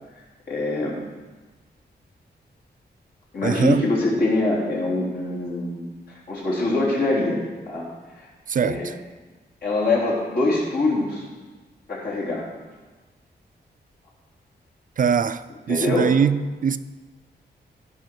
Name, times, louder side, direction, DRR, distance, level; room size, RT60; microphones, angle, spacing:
voice 1, 0.5-0.9 3.3-7.9 8.2-8.3 8.6-9.0 9.6-11.3 11.9-12.5 15.7-16.1, left 2 dB, 65° left, 3.8 m, -24 dB
voice 2, 3.4-3.8 8.5-8.8 15.0-15.4 15.7-16.8, right 7 dB, 50° right, 0.4 m, -21 dB
16.0 x 5.7 x 6.1 m
wide cardioid pair, 170°, 18 cm